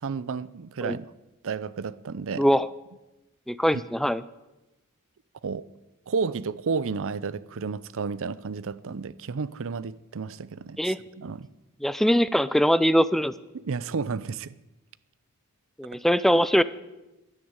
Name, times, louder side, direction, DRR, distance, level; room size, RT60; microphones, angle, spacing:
voice 1, 0.0-1.0 1.4-2.5 5.4-5.7 6.1-11.5 13.7-14.6, right 5 dB, 65° right, 0.5 m, -32 dB
voice 2, 2.4-2.7 3.5-4.2 10.8-11.0 11.8-13.3 15.8-16.6, equal, ahead, 0.4 m, -22 dB
11.5 x 10.0 x 8.9 m
head